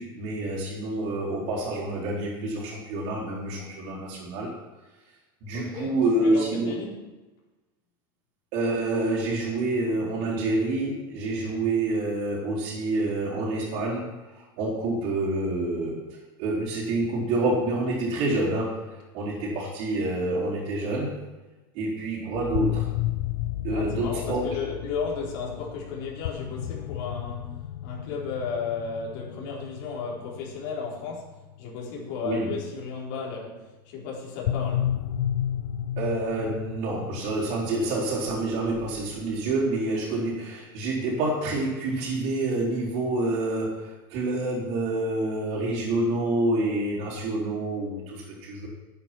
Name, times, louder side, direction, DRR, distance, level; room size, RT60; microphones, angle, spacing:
voice 1, 0.0-4.5 5.4-6.8 8.5-16.0 16.4-18.9 19.1-21.1 21.7-22.9 23.6-24.5 32.2-32.5 36.0-48.7, right 2 dB, 50° right, -8 dB, 4.1 m, -27 dB
voice 2, 5.5-7.1 23.7-27.5 27.8-31.3 31.6-34.9, left 5 dB, 60° left, -3 dB, 4.0 m, -34 dB
sound 1, 22.3-32.5 34.4-39.5, left 11 dB, 80° left, 0.7 m, -33 dB
11.0 x 9.1 x 6.1 m, 1.1 s
supercardioid pair, 160°, 12 cm